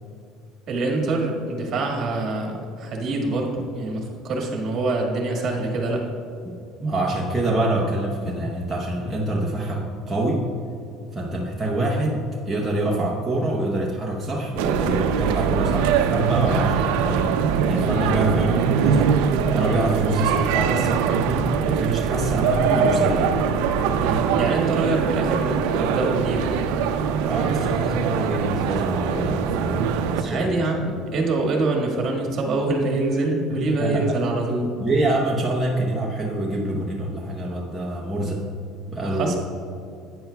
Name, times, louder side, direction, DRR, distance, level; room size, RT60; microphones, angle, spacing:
voice 1, 0.7-6.1 23.9-26.7 30.2-34.8 39.0-39.4, right 2 dB, 40° right, 0 dB, 1.7 m, -25 dB
voice 2, 6.8-10.5 11.1-23.3 27.3-30.9 33.5-34.1 34.8-38.4 38.9-39.3, right 1 dB, 10° right, -3 dB, 0.8 m, -26 dB
sound 1, 14.6-30.2, right 7 dB, 90° right, 0.5 m, -22 dB
11.5 x 9.1 x 2.3 m, 2.5 s
cardioid pair, 145°, 0 cm